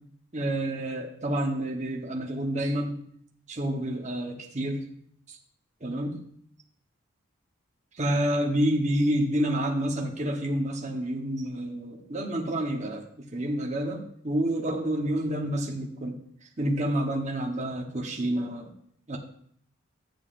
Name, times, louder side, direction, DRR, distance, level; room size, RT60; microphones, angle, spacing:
voice 1, 0.3-3.0 3.5-4.8 5.3-5.4 5.8-6.2 8.0-13.0 13.3-16.2 16.6-18.7 19.1-19.2, right 1 dB, 35° right, -1 dB, 1.0 m, -28 dB
12.0 x 7.3 x 2.5 m, 0.65 s
head